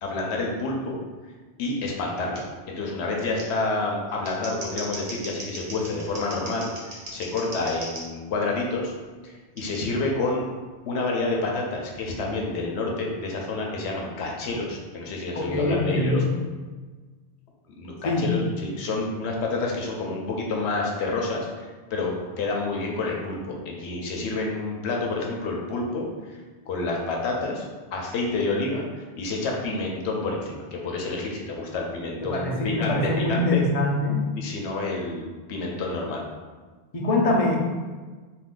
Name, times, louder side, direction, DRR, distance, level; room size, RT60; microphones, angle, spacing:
voice 1, 0.0-1.0 1.6-8.9 9.2-10.4 10.9-16.2 17.8-21.7 21.9-26.4 26.7-27.7 27.9-33.7 34.4-36.2, left 3 dB, 90° left, -1 dB, 0.8 m, -29 dB
Scissors, 2.3-2.4 3.4-3.5 4.1-8.0 9.6-9.8, right 1 dB, 40° right, 0.7 m, -38 dB
voice 2, 15.4-16.2 18.0-18.3 32.2-34.2 36.9-37.7, left 2 dB, 45° left, -2 dB, 0.5 m, -23 dB
2.7 x 2.5 x 3.6 m, 1.4 s
omnidirectional pair, 1.1 m